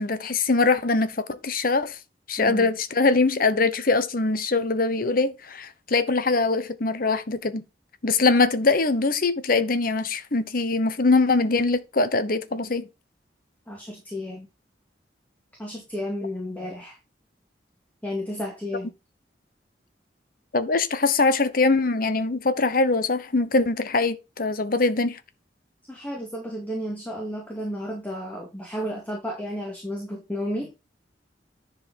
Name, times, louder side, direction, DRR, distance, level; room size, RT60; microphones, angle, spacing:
voice 1, 0.0-2.0 2.3-7.6 8.0-12.9 20.5-25.2, left 3 dB, 55° left, 1.0 m, -22 dB
voice 2, 2.4-2.7 13.7-14.5 15.6-17.0 18.0-18.9 25.9-30.7, equal, 10° left, 2.3 m, -32 dB
10.5 x 4.9 x 4.2 m
head